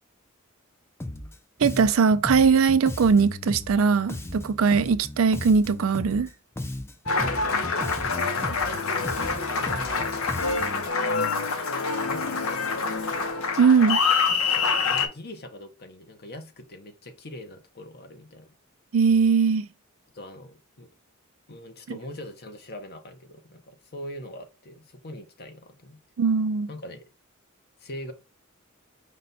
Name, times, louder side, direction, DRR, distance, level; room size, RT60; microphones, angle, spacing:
Bass guitar, 1.0-1.4 1.6-6.3 6.6-10.9, left 1 dB, 10° left, 0.5 m, -36 dB
voice 1, 1.6-6.3 13.6-14.0 18.9-19.7 26.2-26.7, right 5 dB, 75° right, 0.4 m, -20 dB
Applause, 7.1-15.1, left 4 dB, 85° left, 0.8 m, -26 dB
voice 2, 8.0-10.3 12.0-12.6 14.4-18.5 20.1-20.9 21.5-26.0 26.7-27.0 27.8-28.1, left 1 dB, 50° left, 0.8 m, -42 dB
5.3 x 2.2 x 4.0 m
head